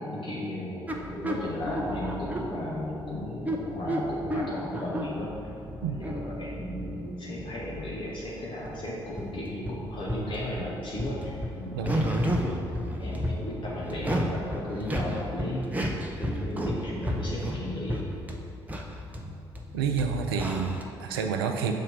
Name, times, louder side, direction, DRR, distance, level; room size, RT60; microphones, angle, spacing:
voice 1, 0.0-5.5 5.8-15.7 16.2-18.1, left 1 dB, 40° left, -6 dB, 1.1 m, -35 dB
sound 1, 0.9-20.8, equal, 10° right, 0.8 m, -33 dB
voice 2, 19.7-21.7, right 6 dB, 75° right, 5 dB, 0.5 m, -29 dB
6.5 x 4.2 x 5.3 m, 2.6 s
figure-of-eight pair, 45°, 13 cm